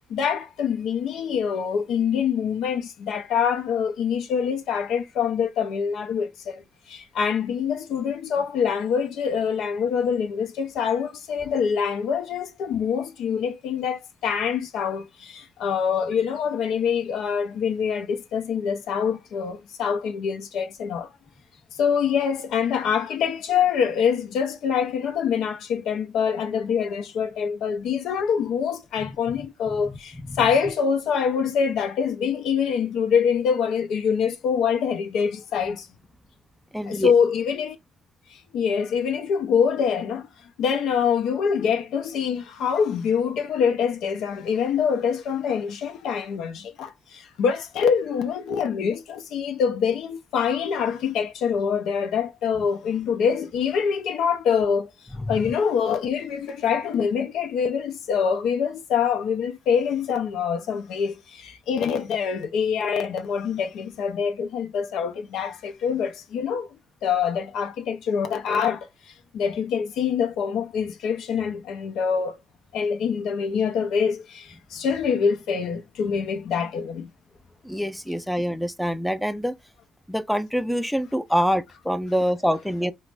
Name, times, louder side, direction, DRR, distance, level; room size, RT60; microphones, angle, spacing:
voice 1, 0.1-6.6 6.9-21.1 21.8-35.9 36.9-37.8 38.5-40.3 40.6-54.9 55.3-66.7 67.0-68.9 69.3-72.3 72.7-77.1, left 7 dB, 80° left, 0.5 m, -25 dB
voice 2, 29.0-29.9 30.2-30.4 36.7-37.1 55.1-55.5 77.6-79.6 80.1-82.9, equal, 5° left, 0.4 m, -26 dB
3.0 x 2.0 x 3.3 m
cardioid pair, 90°, 0 cm